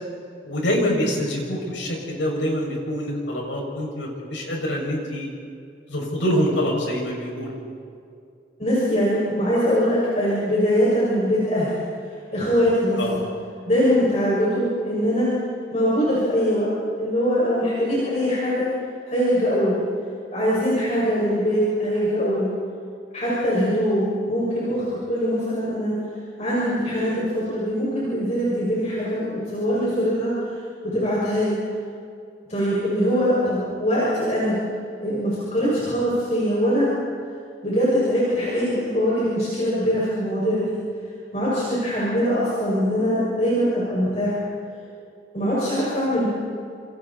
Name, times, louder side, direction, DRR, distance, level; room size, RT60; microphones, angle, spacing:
voice 1, 0.4-5.3 5.9-7.5 13.0-13.2, equal, 85° left, -2 dB, 6.9 m, -25 dB
voice 2, 8.6-11.9 12.3-13.2 13.7-15.3 15.7-16.7 17.0-18.7 19.0-19.8 20.3-22.5 23.1-25.9 26.4-30.3 30.9-31.6 32.5-34.6 35.0-36.9 37.6-40.8 41.3-44.3 45.3-46.3, equal, 35° left, -7 dB, 6.5 m, -22 dB
29.0 x 27.5 x 4.4 m, 2.4 s
head